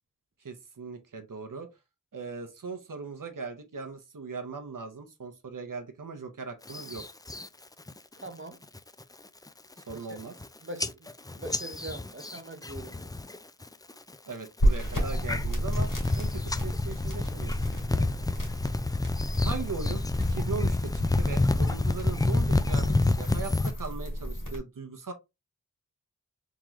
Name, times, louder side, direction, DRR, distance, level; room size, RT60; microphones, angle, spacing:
voice 1, 0.4-1.7 2.1-7.0 9.8-10.4 14.3-15.9 16.1-18.1 19.4-25.1, right 4 dB, 75° right, 0.8 m, -39 dB
sound 1, 6.7-7.5 7.9-8.3 8.6-9.0 9.5-9.6 9.8-10.5 10.8-13.4 13.6-14.1 14.7-23.7, left 2 dB, 10° left, 0.3 m, -29 dB
voice 2, 8.2-8.6 10.1-10.2 10.6-11.1 11.3-13.1, right 1 dB, 40° right, 0.8 m, -42 dB
sound 2, 14.6-24.6, equal, 75° left, 2.1 m, -33 dB
3.7 x 2.9 x 3.0 m
wide cardioid pair, 45°, 32 cm